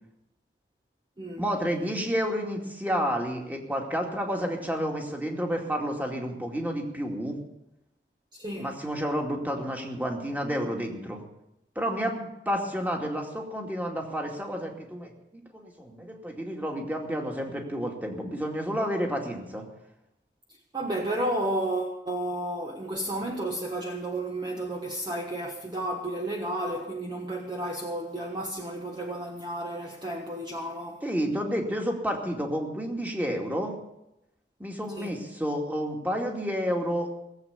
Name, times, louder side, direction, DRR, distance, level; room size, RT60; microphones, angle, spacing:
voice 1, 1.4-7.4 8.6-11.2 11.8-19.6 31.0-33.7 34.6-37.2, equal, 10° right, 2.4 m, -30 dB
voice 2, 8.3-8.8 20.7-31.0 35.0-35.1, right 1 dB, 25° right, 1.4 m, -32 dB
18.5 x 8.2 x 8.5 m
head